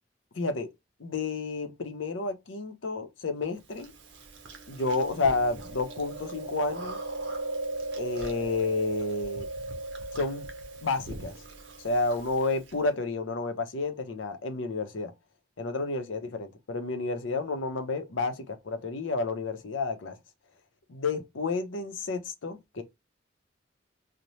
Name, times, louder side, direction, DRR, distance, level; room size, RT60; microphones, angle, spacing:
voice 1, 0.4-0.7 1.0-3.9 4.7-7.0 8.0-9.5 10.1-10.5 10.8-11.3 11.8-15.1 15.6-20.2 20.9-22.8, left 3 dB, 80° left, 0.6 m, -30 dB
Chewing mastication, 3.8-12.7, right 2 dB, 70° right, 0.6 m, -38 dB
3.0 x 2.0 x 2.7 m
head